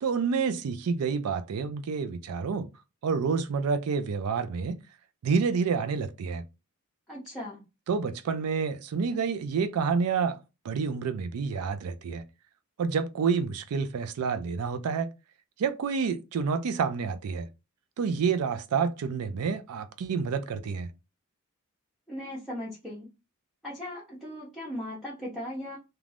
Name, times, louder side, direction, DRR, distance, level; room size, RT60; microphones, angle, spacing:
voice 1, 0.0-2.7 3.0-4.8 5.2-6.4 7.9-10.4 10.6-12.2 12.8-15.1 15.6-17.5 18.0-20.9, right 5 dB, 85° right, 0.4 m, -28 dB
voice 2, 7.1-7.6 22.1-23.1 23.6-25.8, left 1 dB, ahead, 0.7 m, -38 dB
2.5 x 2.2 x 3.2 m
head